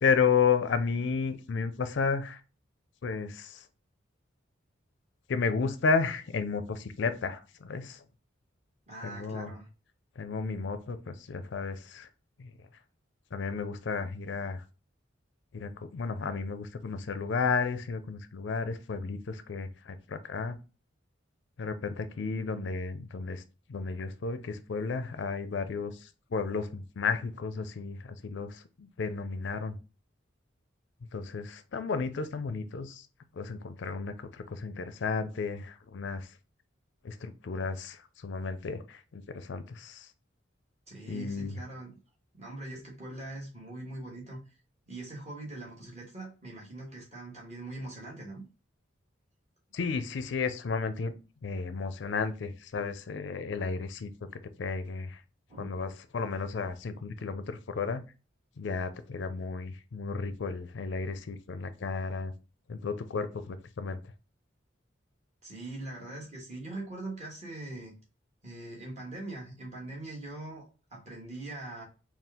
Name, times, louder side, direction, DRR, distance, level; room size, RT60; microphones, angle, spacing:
voice 1, 0.0-2.4 3.0-3.6 5.3-8.0 9.0-9.5 10.2-12.1 12.4-12.5 13.3-14.6 15.5-20.6 21.6-23.4 23.7-29.8 31.1-33.0 33.4-36.3 37.0-40.1 41.1-41.6 49.7-51.1 51.4-54.1 54.6-55.2 55.6-58.0 58.6-62.3 62.7-64.0, left 5 dB, 65° left, 0.4 m, -32 dB
voice 2, 8.9-9.7 40.9-42.0 42.3-44.5 44.9-48.4 55.5-55.7 65.4-67.9 68.4-71.8, right 2 dB, 35° right, 1.6 m, -42 dB
4.2 x 2.3 x 3.5 m
head